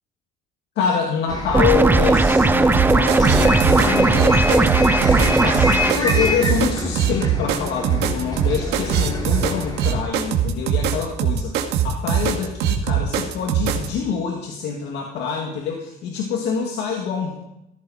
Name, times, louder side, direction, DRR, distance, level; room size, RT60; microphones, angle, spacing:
voice 1, 0.8-17.4, left 6 dB, 85° left, 1 dB, 2.1 m, -26 dB
Bus, 1.3-10.0, left 2 dB, 25° left, 3.1 m, -27 dB
sound 1, 1.5-5.9, right 3 dB, 10° right, 0.7 m, -17 dB
sound 2, 2.7-13.9, right 8 dB, 80° right, 1.9 m, -21 dB
15.0 x 14.0 x 4.2 m, 0.88 s
cardioid pair, 110°, 17 cm